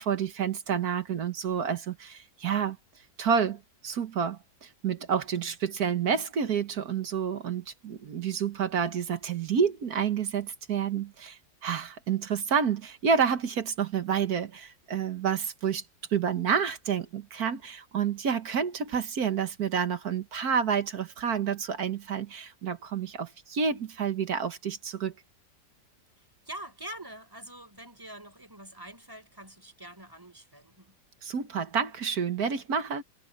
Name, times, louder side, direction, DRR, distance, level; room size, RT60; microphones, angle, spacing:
voice 1, 0.0-2.8 3.2-15.8 16.1-25.1 31.2-33.0, right 7 dB, 65° right, 1.7 m, -29 dB
voice 2, 26.2-31.0, right 1 dB, 10° right, 4.5 m, -45 dB
omnidirectional pair, 1.8 m